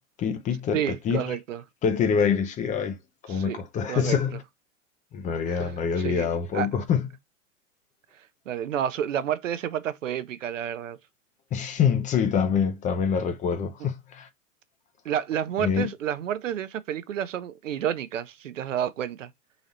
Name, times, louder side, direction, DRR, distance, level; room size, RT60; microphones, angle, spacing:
voice 1, 0.2-1.4 1.8-3.0 3.2-4.4 5.1-7.1 11.5-14.3 15.6-15.9, left 7 dB, 20° left, 0.6 m, -25 dB
voice 2, 0.7-1.6 3.3-3.6 3.9-4.2 5.5-5.7 6.0-6.7 8.5-11.0 15.0-19.3, right 9 dB, 70° right, 0.7 m, -30 dB
4.0 x 2.9 x 3.9 m
figure-of-eight pair, 105°, 40 cm